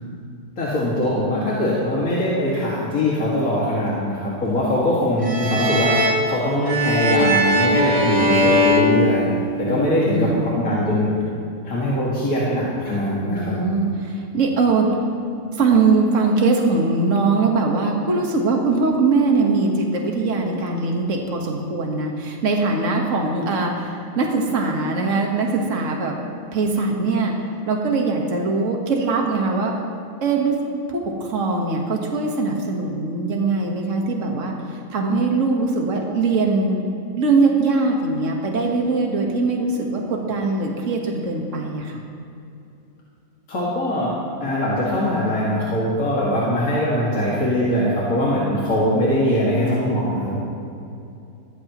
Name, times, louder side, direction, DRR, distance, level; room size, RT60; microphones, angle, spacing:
voice 1, 0.6-11.1 11.6-13.6 43.5-44.1 44.4-50.4, equal, 65° left, -7 dB, 2.6 m, -22 dB
sound 1, 5.2-9.8, left 1 dB, 30° right, 1.8 m, -20 dB
voice 2, 9.7-10.4 13.3-15.0 15.5-26.2 26.5-27.3 27.7-29.7 30.2-30.6 30.9-36.8 37.2-42.0, right 3 dB, 55° right, 0 dB, 1.8 m, -21 dB
21.0 x 15.0 x 3.1 m, 2.6 s
omnidirectional pair, 1.6 m